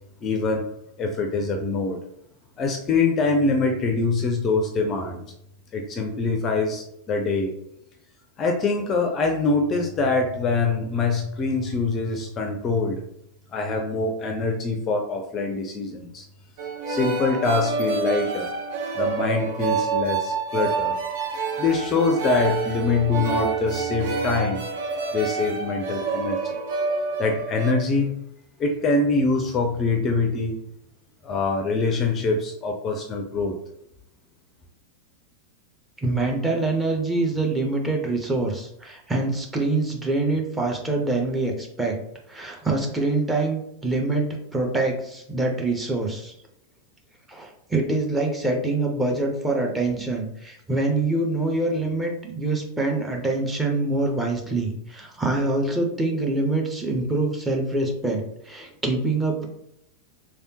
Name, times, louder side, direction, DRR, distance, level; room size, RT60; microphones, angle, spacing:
voice 1, 0.2-0.7 1.0-2.0 2.6-5.2 5.7-7.5 8.4-13.0 13.5-16.2 16.9-18.5 18.9-21.0 21.6-24.7 25.1-26.4 27.2-28.2 28.6-30.6 31.2-33.6, left 3 dB, 25° left, 2 dB, 0.4 m, -24 dB
sound 1, 16.6-27.7, right 4 dB, 50° right, 0.5 m, -28 dB
voice 2, 36.0-42.0 42.3-46.3 47.3-59.5, right 2 dB, 10° right, 0 dB, 0.7 m, -25 dB
3.4 x 2.3 x 2.8 m, 0.77 s
figure-of-eight pair, 90°, 0 cm